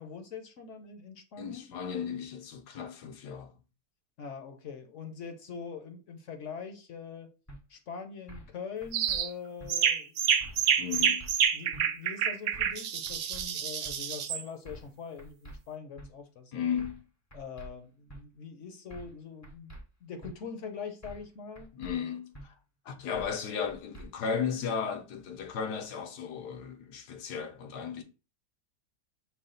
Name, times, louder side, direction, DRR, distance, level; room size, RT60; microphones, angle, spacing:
voice 1, 0.0-1.7 4.2-7.3 7.7-10.2 11.5-16.6 17.3-21.7, left 6 dB, 55° left, 1.0 m, -43 dB
voice 2, 1.4-3.5 10.8-11.3 16.5-17.0 21.7-22.5 22.9-28.0, left 7 dB, 80° left, 1.4 m, -35 dB
sound 1, 7.5-7.6 8.3-8.5 8.8-9.2 9.6-9.7 10.4-10.7 10.9-11.3 11.7-11.8 12.5-12.8 13.1-13.4 13.8-14.0 14.7-14.9 15.2-15.6 16.0-16.1 16.8-17.0 17.3-17.7 18.1-18.2 18.9-19.2 19.4-19.8 20.2-20.3 21.0-21.3 21.6-21.9 22.3-22.5 23.1-23.4 23.7-24.1, right 1 dB, 20° left, 0.4 m, -47 dB
sound 2, 8.9-9.3 9.7-14.4, right 8 dB, 70° right, 1.0 m, -28 dB
5.5 x 2.4 x 3.8 m
omnidirectional pair, 1.7 m